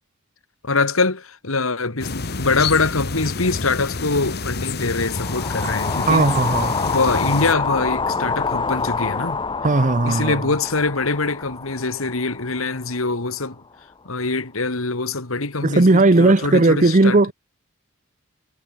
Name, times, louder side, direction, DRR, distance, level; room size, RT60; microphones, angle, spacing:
voice 1, 0.6-6.3 6.7-9.4 10.0-13.6 14.1-17.2, left 3 dB, 75° left, 2.2 m, -23 dB
sound 1, 2.0-7.5, left 3 dB, 50° left, 1.4 m, -28 dB
sound 2, 5.1-13.3, left 4 dB, 25° left, 0.8 m, -27 dB
voice 2, 6.1-6.7 9.6-10.4 15.6-17.3, right 2 dB, 35° right, 0.8 m, -16 dB
head